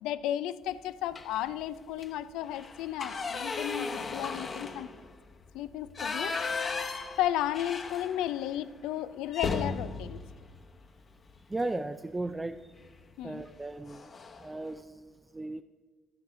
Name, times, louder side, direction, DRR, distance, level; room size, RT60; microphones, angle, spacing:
voice 1, 0.0-4.9 5.5-6.4 7.2-10.2 13.2-13.5, left 12 dB, 75° left, 14 dB, 0.4 m, -33 dB
sound 1, 1.1-1.5 1.9-2.1 2.4-8.5 8.8-8.9 9.3-11.4 12.8-13.0 13.4-13.6 13.9-14.5, left 4 dB, 45° left, 1.1 m, -36 dB
voice 2, 11.5-12.7 13.2-14.1 14.4-15.6, right 2 dB, 20° right, 8 dB, 0.4 m, -36 dB
14.5 x 5.5 x 4.9 m, 1.4 s
hypercardioid pair, 50°, 0 cm